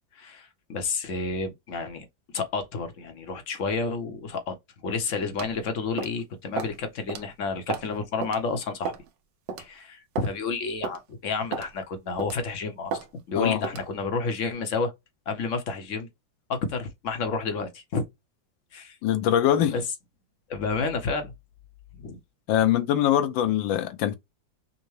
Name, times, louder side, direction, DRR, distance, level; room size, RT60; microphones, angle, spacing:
voice 1, 0.1-2.1 2.3-4.6 4.8-8.9 9.6-14.9 15.3-16.1 16.5-18.1 18.7-19.0 19.6-19.8 20.5-21.3 22.0-22.2, left 4 dB, 55° left, 0.9 m, -30 dB
sound 1, 5.4-5.6 6.0-6.2 6.6-6.8 7.1-7.2 7.7-7.9 8.2-8.4 8.8-9.1 9.5-9.6 10.1-10.3 10.8-11.0 11.5-11.7 12.2-12.4 12.9-13.1 13.6-13.9, right 6 dB, 75° right, 1.4 m, -32 dB
voice 2, 19.0-19.8 22.5-24.1, left 11 dB, 85° left, 1.4 m, -23 dB
5.5 x 2.1 x 3.1 m
omnidirectional pair, 2.0 m